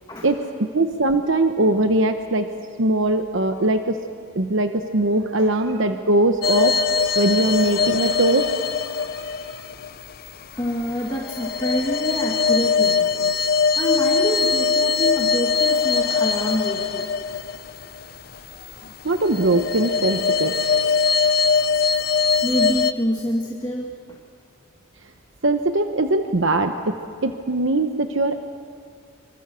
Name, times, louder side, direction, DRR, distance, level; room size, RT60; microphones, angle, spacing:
voice 1, 0.7-2.5 2.8-4.0 4.4-6.8 7.2-8.5 8.8-9.4 19.0-20.5 25.4-27.0 27.2-28.4, right 2 dB, 65° right, 7 dB, 1.0 m, -21 dB
sound 1, 6.4-10.3 10.8-18.7 19.1-22.9, left 5 dB, 45° left, 0.6 m, -22 dB
voice 2, 10.5-13.3 13.8-17.1 18.3-18.4 22.4-24.2, equal, 20° left, -1 dB, 1.8 m, -27 dB
26.0 x 24.5 x 6.9 m, 2.2 s
head